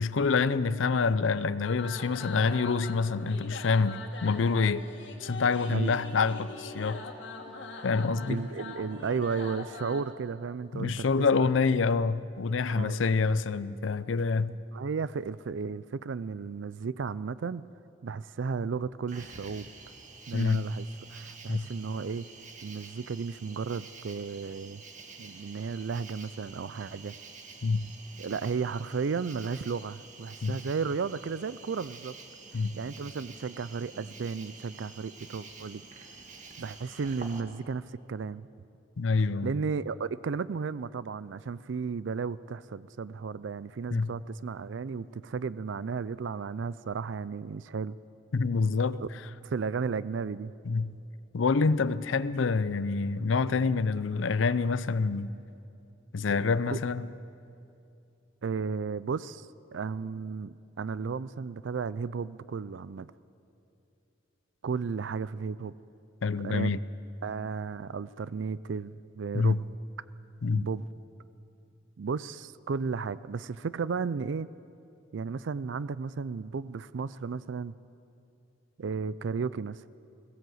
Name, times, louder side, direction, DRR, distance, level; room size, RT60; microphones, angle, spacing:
voice 1, 0.0-4.9 5.2-7.1 7.8-8.4 10.7-14.6 20.3-20.7 21.5-21.7 27.6-27.9 30.4-30.6 32.5-32.8 39.0-39.5 43.9-44.1 48.3-49.0 50.7-51.0 51.3-55.3 56.1-57.1 66.2-66.8 69.3-69.6 70.4-70.7, left 4 dB, 85° left, 0.6 m, -27 dB
sound 1, 1.6-10.1, left 3 dB, 70° left, 2.0 m, -43 dB
voice 2, 8.3-11.5 12.6-13.2 14.7-17.7 18.0-19.7 20.3-22.2 22.6-24.8 25.2-27.2 28.2-32.1 32.8-35.8 36.6-38.5 39.4-48.0 49.0-49.1 49.4-50.5 56.7-56.8 58.4-63.1 64.6-65.7 66.4-66.7 67.2-69.6 70.5-70.9 72.0-74.5 75.1-77.7 78.8-79.8, right 5 dB, 75° right, 0.4 m, -34 dB
Cricket, 19.1-37.4, right 4 dB, 40° right, 1.7 m, -49 dB
21.0 x 16.0 x 7.8 m
head